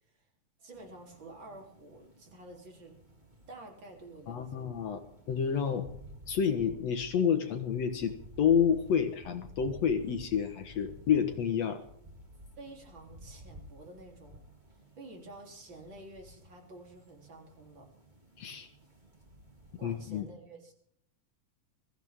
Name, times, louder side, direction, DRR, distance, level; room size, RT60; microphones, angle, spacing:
voice 1, 0.6-2.9 3.5-4.7 12.6-14.4 14.7-17.9 19.8-20.7, right 2 dB, 35° right, 2 dB, 4.0 m, -50 dB
sound 1, 0.7-20.2, equal, 15° right, 3.1 m, -54 dB
voice 2, 4.3-5.0 5.3-5.9 6.3-11.8 18.4-18.7 19.8-20.3, left 7 dB, 60° left, 7 dB, 2.2 m, -29 dB
22.5 x 15.5 x 3.7 m, 0.68 s
omnidirectional pair, 3.5 m